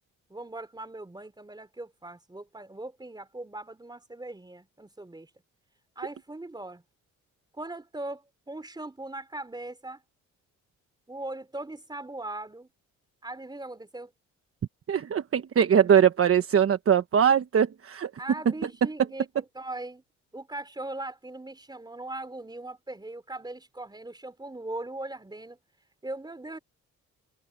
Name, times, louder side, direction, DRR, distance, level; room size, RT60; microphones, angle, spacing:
voice 1, 0.3-5.3 6.0-6.8 7.5-10.0 11.1-12.7 13.2-14.1 18.2-20.0 20.3-25.6 26.0-26.6, right 2 dB, 15° right, 3.6 m, -39 dB
voice 2, 14.9-18.1, right 8 dB, 50° right, 1.3 m, -21 dB
cardioid pair, 90°, 30 cm